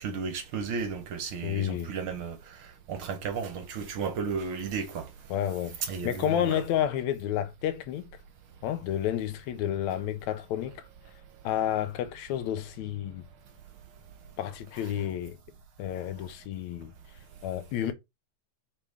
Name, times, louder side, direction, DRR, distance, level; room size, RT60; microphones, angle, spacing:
voice 1, 0.0-2.4 2.9-5.1 5.8-6.6, right 5 dB, 60° right, 1.5 m, -33 dB
voice 2, 1.4-1.9 5.3-8.1 8.6-10.8 11.4-13.2 14.4-15.4 15.8-16.9 17.4-17.9, left 10 dB, 75° left, 2.0 m, -30 dB
5.9 x 5.1 x 3.5 m
omnidirectional pair, 3.4 m